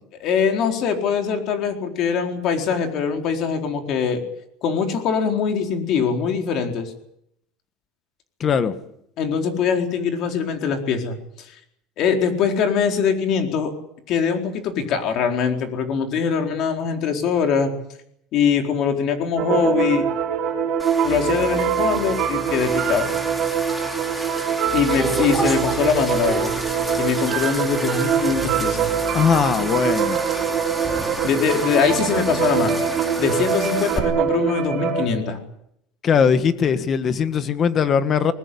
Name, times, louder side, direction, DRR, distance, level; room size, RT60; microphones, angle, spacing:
voice 1, 0.2-4.2 4.6-6.9 9.2-11.5 12.0-13.7 14.1-17.7 18.3-20.1 21.0-23.1 24.7-26.5 27.0-28.9 31.2-32.8 33.2-35.4, left 6 dB, 40° left, 4 dB, 4.2 m, -22 dB
voice 2, 8.4-8.7 29.1-30.2 36.0-38.3, left 7 dB, 25° left, 12 dB, 1.5 m, -20 dB
sound 1, 19.4-35.1, right 7 dB, 35° right, 5.4 m, -23 dB
sound 2, 20.8-34.0, equal, 5° left, 3.1 m, -31 dB
21.0 x 20.0 x 9.9 m, 0.75 s
cardioid pair, 170°, 0 cm